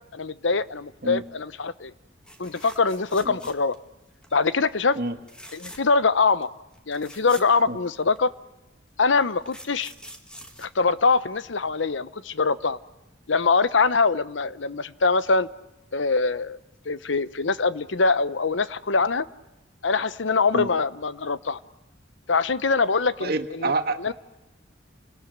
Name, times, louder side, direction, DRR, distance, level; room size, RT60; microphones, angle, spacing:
voice 1, 0.1-1.9 2.4-3.8 4.3-5.0 5.5-6.5 6.9-8.3 9.0-9.9 10.6-12.8 13.3-15.5 15.9-16.6 16.9-19.3 19.8-21.6 22.3-23.7 24.0-24.1, left 4 dB, 80° left, 15 dB, 0.9 m, -23 dB
sound 1, 2.2-3.9 4.2-4.6 5.2-6.0 6.4-6.5 6.7-8.2 9.0-11.5 13.4-13.6 13.9-14.0, equal, 5° left, 2.0 m, -45 dB
voice 2, 23.2-24.1, right 3 dB, 55° right, 8 dB, 1.7 m, -28 dB
29.5 x 19.5 x 8.0 m, 1.0 s
head